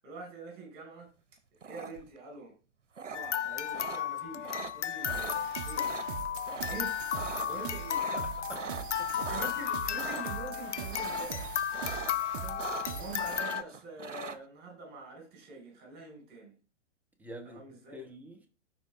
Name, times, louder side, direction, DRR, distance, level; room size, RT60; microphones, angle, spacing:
voice 1, 0.0-1.1 1.6-2.6 3.0-5.9 6.7-7.0 7.4-8.1 9.1-11.6 12.9-16.6 17.4-18.0, right 3 dB, 25° right, 4.5 m, -45 dB
sound 1, 1.6-2.2 3.0-3.2 3.7-4.0 4.4-4.7 5.1-5.4 5.7-6.1 6.5-6.8 7.0-7.5 7.9-9.5 9.9-10.2 10.9-11.4 11.7-12.1 12.4-13.0 13.3-14.4, right 5 dB, 80° right, 0.8 m, -40 dB
sound 2, 3.1-13.6, left 10 dB, 70° left, 0.5 m, -34 dB
sound 3, 5.0-13.4, right 10 dB, 45° right, 0.7 m, -42 dB
voice 2, 8.1-8.7 9.0-9.1 12.4-12.6 17.2-18.5, right 1 dB, 5° right, 1.0 m, -47 dB
13.0 x 4.8 x 3.4 m
figure-of-eight pair, 105°, 36 cm